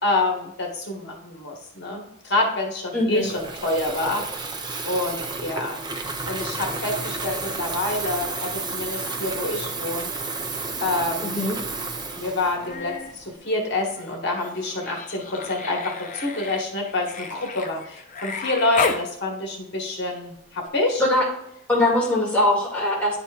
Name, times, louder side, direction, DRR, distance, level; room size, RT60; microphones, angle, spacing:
voice 1, 0.0-4.3 4.8-5.8 6.3-10.1 10.8-11.4 12.2-21.0, left 2 dB, 55° left, 1 dB, 1.4 m, -27 dB
voice 2, 2.9-3.3 11.2-11.6 21.0-21.2 21.7-23.2, left 1 dB, 5° left, -6 dB, 2.1 m, -21 dB
Water tap faucet / Fill (with liquid), 3.1-13.4, right 3 dB, 20° right, 0.5 m, -32 dB
Human voice, 12.4-13.1 13.5-19.1 20.7-20.8, left 4 dB, 35° left, 0.6 m, -33 dB
10.5 x 4.2 x 2.4 m, 0.75 s
head